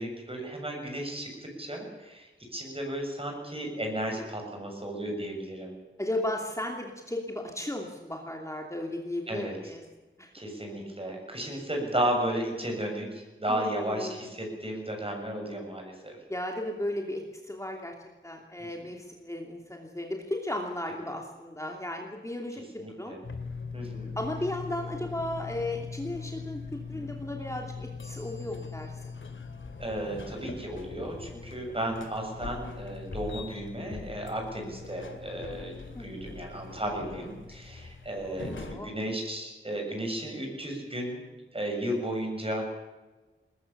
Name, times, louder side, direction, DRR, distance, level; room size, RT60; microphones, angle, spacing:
voice 1, 0.0-5.8 9.3-9.6 10.3-16.2 18.6-18.9 22.8-23.2 23.7-24.1 29.8-41.2 41.5-42.6, right 1 dB, 25° right, 2 dB, 7.0 m, -34 dB
voice 2, 6.0-9.8 10.2-10.3 13.5-14.3 16.3-17.9 18.2-23.2 24.2-29.1 35.9-36.4 38.2-38.9, left 1 dB, 15° left, 1 dB, 2.8 m, -35 dB
sound 1, 23.2-38.8, left 4 dB, 70° left, 2.5 m, -41 dB
20.5 x 20.5 x 6.9 m, 1.2 s
wide cardioid pair, 75°, 21 cm